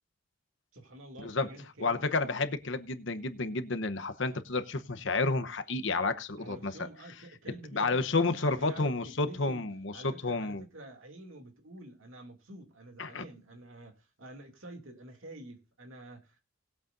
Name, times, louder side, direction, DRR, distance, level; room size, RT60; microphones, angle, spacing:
voice 1, 0.7-2.0 6.4-9.6 9.9-16.4, right 1 dB, 75° right, 2.6 m, -48 dB
voice 2, 1.8-6.7 7.7-10.6 13.0-13.2, left 3 dB, 60° left, 0.9 m, -30 dB
20.0 x 8.2 x 2.6 m
head